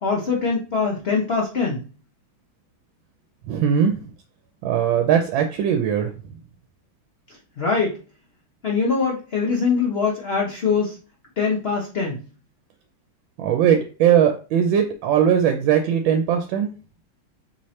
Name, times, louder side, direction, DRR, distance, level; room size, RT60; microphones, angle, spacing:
voice 1, 0.0-1.8 7.6-8.0 8.6-11.0 11.4-12.2, left 5 dB, 90° left, 0.5 m, -23 dB
voice 2, 3.5-3.9 4.6-6.1 13.4-16.7, right 8 dB, 85° right, 1.3 m, -19 dB
5.0 x 3.1 x 2.8 m
omnidirectional pair, 2.1 m